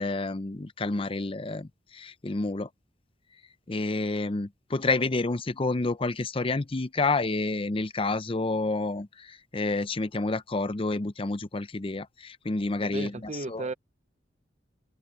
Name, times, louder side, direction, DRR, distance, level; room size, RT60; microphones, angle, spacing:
voice 1, 0.0-2.7 3.7-13.1 13.5-13.7, left 3 dB, 30° left, 0.6 m, -29 dB
voice 2, 12.8-13.7, right 2 dB, 40° right, 0.7 m, -34 dB
head